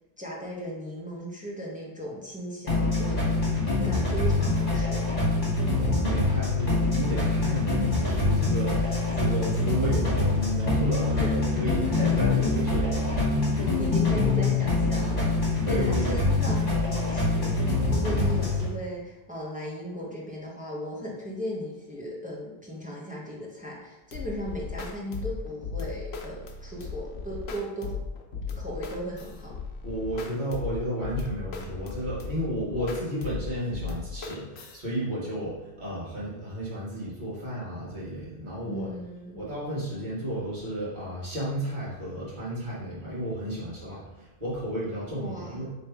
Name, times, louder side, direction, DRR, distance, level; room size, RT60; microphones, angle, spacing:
voice 1, 0.2-3.4 3.7-5.1 8.8-9.0 11.1-11.3 13.5-15.3 15.6-28.0 28.3-29.5 38.7-39.4 45.1-45.7, equal, 10° right, -4 dB, 0.7 m, -37 dB
sound 1, 2.7-18.7, left 3 dB, 40° left, 1.4 m, -25 dB
voice 2, 5.8-13.3 15.6-16.3 29.8-38.9 39.3-45.7, right 1 dB, 45° right, -9 dB, 1.9 m, -33 dB
sound 2, 24.1-34.8, left 5 dB, 85° left, 0.9 m, -37 dB
3.3 x 3.2 x 4.6 m, 0.97 s
omnidirectional pair, 1.1 m